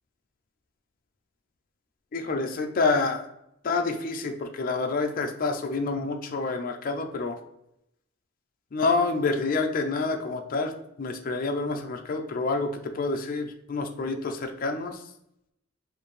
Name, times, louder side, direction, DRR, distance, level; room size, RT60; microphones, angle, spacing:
voice 1, 2.1-3.3 3.6-7.4 8.7-10.7 11.0-15.0, left 3 dB, 40° left, 4 dB, 0.4 m, -28 dB
4.4 x 2.5 x 3.1 m, 0.80 s
head